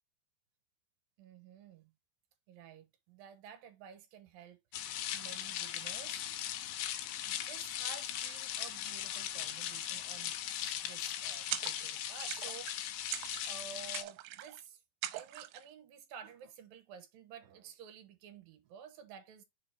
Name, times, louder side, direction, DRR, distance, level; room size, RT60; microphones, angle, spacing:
voice 1, 1.2-1.9 2.5-4.6 5.1-6.4 7.3-14.8 15.1-19.4, right 8 dB, 65° right, 2.4 m, -52 dB
sound 1, 4.7-14.0, left 11 dB, 80° left, 3.1 m, -39 dB
sound 2, 11.5-12.0 12.3-12.8 13.1-13.6 13.9-14.6 15.0-15.7, right 14 dB, 85° right, 2.9 m, -41 dB
7.2 x 3.6 x 4.3 m
omnidirectional pair, 5.3 m